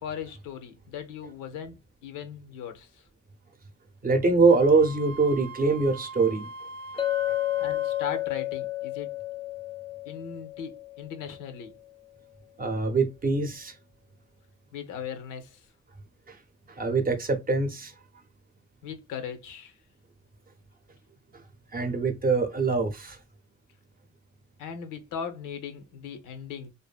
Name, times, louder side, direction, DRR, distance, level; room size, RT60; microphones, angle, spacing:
voice 1, 0.0-3.0 7.6-9.1 10.1-11.7 14.7-15.6 18.8-19.8 24.6-26.7, left 7 dB, 90° left, 0.7 m, -38 dB
voice 2, 4.0-6.5 6.9-7.3 12.6-13.7 16.3-16.4 16.7-17.9 21.7-23.2, right 4 dB, 30° right, 0.6 m, -24 dB
Wind instrument woodwind instrument, 4.5-8.2, right 2 dB, 70° right, 0.5 m, -42 dB
Chink clink, 7.0-11.4, left 15 dB, 20° left, 0.5 m, -31 dB
2.6 x 2.5 x 2.2 m
cardioid pair, 90°, 30 cm